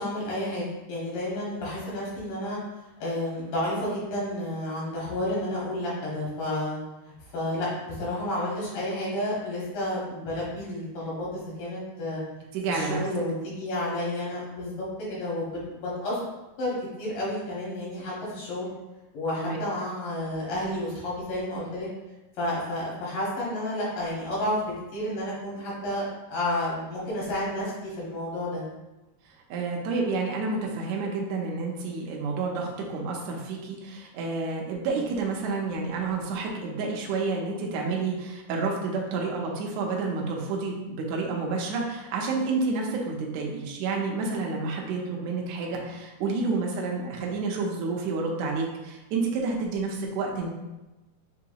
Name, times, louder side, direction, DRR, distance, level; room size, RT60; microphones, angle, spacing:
voice 1, 0.0-2.6 3.0-6.8 7.0-12.2 12.7-15.5 15.7-16.2 16.6-18.7 19.1-21.9 22.4-28.6, left 1 dB, 80° left, -6 dB, 3.1 m, -31 dB
voice 2, 12.5-13.0 19.4-19.6 29.5-50.5, right 4 dB, 90° right, -1 dB, 1.6 m, -29 dB
6.7 x 2.8 x 2.3 m, 1.1 s
omnidirectional pair, 3.9 m